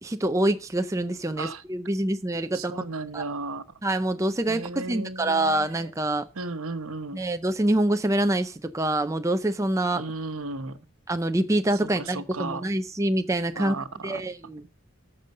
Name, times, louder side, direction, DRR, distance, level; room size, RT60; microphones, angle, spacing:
voice 1, 0.0-2.8 3.1-3.2 3.8-6.3 7.1-10.0 11.1-13.8 14.0-14.6, right 1 dB, 15° right, 0.5 m, -26 dB
voice 2, 2.5-3.6 4.5-5.8 6.3-7.2 9.9-10.8 11.8-12.7 13.6-14.2, right 3 dB, 75° right, 1.0 m, -35 dB
13.5 x 5.4 x 6.6 m
head